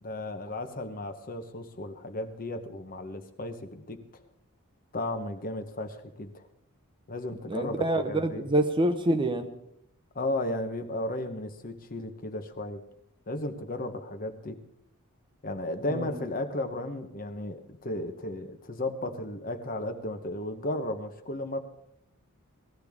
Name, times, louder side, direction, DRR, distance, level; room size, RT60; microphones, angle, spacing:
voice 1, 0.0-4.2 4.9-6.5 7.1-8.4 10.1-12.8 13.3-14.6 15.4-21.6, left 1 dB, 40° left, 8 dB, 1.0 m, -34 dB
voice 2, 7.5-9.5 15.9-16.2, right 1 dB, 20° right, 8 dB, 0.9 m, -26 dB
18.5 x 13.5 x 3.6 m, 0.77 s
head